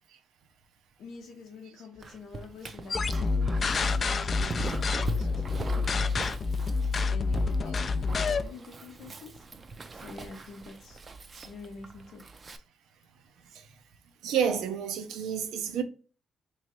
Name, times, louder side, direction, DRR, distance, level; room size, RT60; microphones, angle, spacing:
voice 1, 1.0-6.3 7.1-9.5 9.9-11.0 11.4-12.2, left 4 dB, 80° left, 0.6 m, -47 dB
Dog, 2.0-12.6, right 3 dB, 35° right, 0.4 m, -42 dB
sound 1, 2.9-8.5, left 4 dB, 40° left, 0.3 m, -28 dB
voice 2, 14.2-15.8, right 8 dB, 85° right, 0.5 m, -30 dB
3.1 x 2.5 x 4.1 m
cardioid pair, 90°, 0 cm